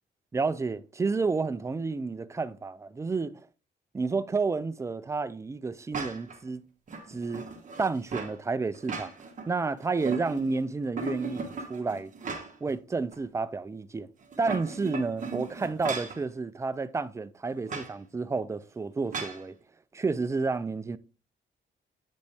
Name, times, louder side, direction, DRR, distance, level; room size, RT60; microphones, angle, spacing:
voice 1, 0.3-3.3 3.9-6.6 7.1-7.5 7.8-9.1 9.5-12.1 12.6-14.1 14.4-19.6 19.9-21.0, right 4 dB, 15° right, 0.3 m, -30 dB
sound 1, 5.9-6.4 6.9-8.4 8.7-9.5 9.8-10.6 11.0-12.7 13.1-13.2 14.2-16.2 17.7-17.9 19.1-19.4, right 4 dB, 40° right, 1.2 m, -37 dB
8.0 x 5.2 x 3.4 m
cardioid pair, 125°, 19 cm